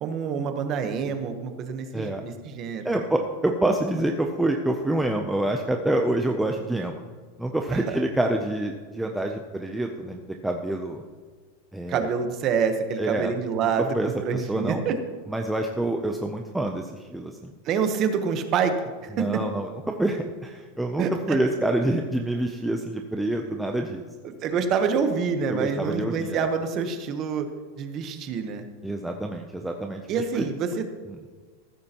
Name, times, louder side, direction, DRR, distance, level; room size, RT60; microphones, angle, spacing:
voice 1, 0.0-3.0 7.7-8.0 11.9-15.0 17.6-18.7 19.2-19.3 21.0-21.4 24.2-27.5 27.8-28.7 30.1-30.9, right 6 dB, 25° right, 8 dB, 0.9 m, -27 dB
voice 2, 2.8-7.0 7.4-11.0 11.7-12.1 13.0-13.3 13.9-14.8 15.3-17.5 19.1-24.1 25.5-26.5 28.8-30.5 31.1-31.2, right 1 dB, 5° right, 2 dB, 0.5 m, -27 dB
15.0 x 13.0 x 2.9 m, 1.5 s
supercardioid pair, 180°, 0 cm